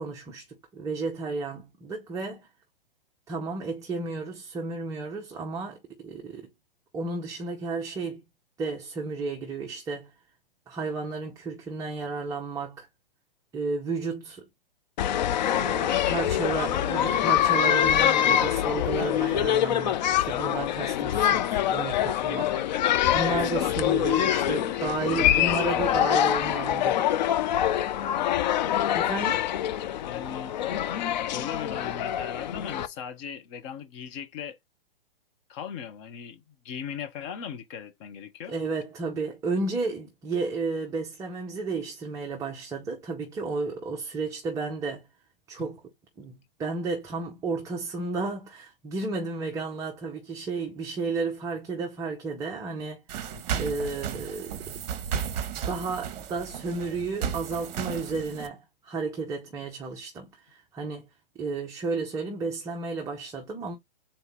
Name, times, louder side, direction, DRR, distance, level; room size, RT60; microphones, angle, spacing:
voice 1, 0.0-2.5 3.3-6.5 6.9-8.2 8.6-10.1 10.7-12.9 13.5-14.5 15.5-22.6 23.1-27.2 28.9-29.5 38.5-45.1 45.5-45.8 46.2-53.0 53.6-54.6 55.6-61.1 61.4-63.8, right 3 dB, 10° right, 0.6 m, -32 dB
sound 1, 15.0-32.9, left 11 dB, 50° left, 0.4 m, -25 dB
voice 2, 23.3-23.9 24.3-25.3 25.7-26.1 29.0-29.4 30.0-30.6 31.3-34.6 35.5-38.5 45.6-45.7 53.3-53.8, left 7 dB, 35° left, 0.9 m, -39 dB
sound 2, 53.1-58.5, right 7 dB, 45° right, 0.9 m, -34 dB
3.9 x 2.8 x 4.0 m
hypercardioid pair, 125°, 29 cm